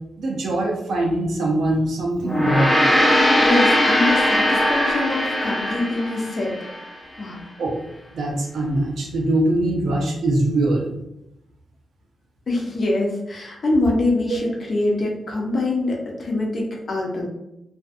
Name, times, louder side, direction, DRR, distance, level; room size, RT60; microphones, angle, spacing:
voice 1, 0.2-2.8 7.6-7.8 8.1-10.9 14.3-14.4, right 1 dB, 80° right, 0 dB, 0.6 m, -22 dB
Gong, 2.2-6.8, equal, 10° left, 0.5 m, -19 dB
voice 2, 3.4-6.5 7.2-7.4 12.5-17.3, left 2 dB, 50° left, -1 dB, 0.7 m, -24 dB
2.5 x 2.4 x 2.5 m, 0.86 s
wide cardioid pair, 120°, 0 cm